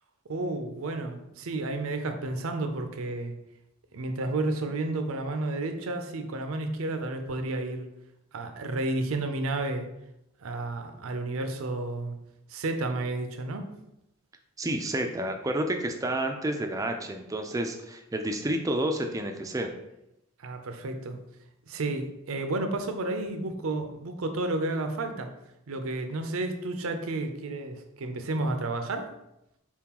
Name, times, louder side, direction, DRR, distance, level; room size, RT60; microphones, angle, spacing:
voice 1, 0.3-3.3 3.9-7.9 8.3-9.9 10.4-12.1 12.5-13.7 20.4-21.2 21.7-25.3 25.7-29.1, right 2 dB, 75° right, 6 dB, 0.5 m, -31 dB
voice 2, 14.6-19.7, right 1 dB, 15° right, 5 dB, 0.3 m, -30 dB
4.3 x 3.7 x 2.9 m, 0.86 s
head